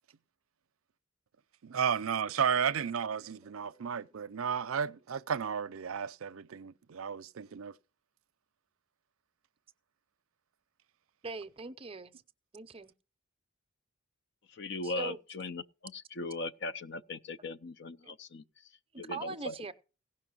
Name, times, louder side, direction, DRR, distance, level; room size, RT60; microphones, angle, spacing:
voice 1, 1.6-7.7, right 7 dB, 75° right, 0.5 m, -33 dB
voice 2, 11.2-12.1 12.5-12.9 14.8-15.2 18.0-18.1 18.9-19.7, right 3 dB, 25° right, 0.6 m, -41 dB
voice 3, 14.5-18.4 19.0-19.5, left 2 dB, 55° left, 0.5 m, -39 dB
16.5 x 5.7 x 6.1 m
head